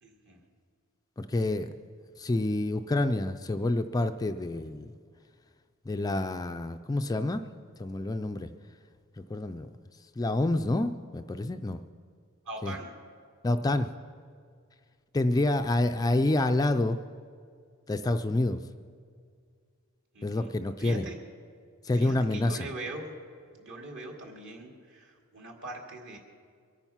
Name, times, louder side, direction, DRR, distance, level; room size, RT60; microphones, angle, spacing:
voice 1, 0.0-0.4 12.5-12.9 20.1-20.5 20.8-21.2 21.9-23.1 23.5-26.2, right 2 dB, 60° right, 1 dB, 2.3 m, -41 dB
voice 2, 1.2-1.7 2.2-4.9 5.9-7.4 7.8-8.5 9.2-9.7 10.2-11.8 12.6-12.7 13.4-13.9 15.1-17.0 17.9-18.6 20.2-21.1 21.8-22.6, left 2 dB, 15° left, 8 dB, 0.3 m, -28 dB
23.0 x 9.0 x 5.7 m, 2.1 s
head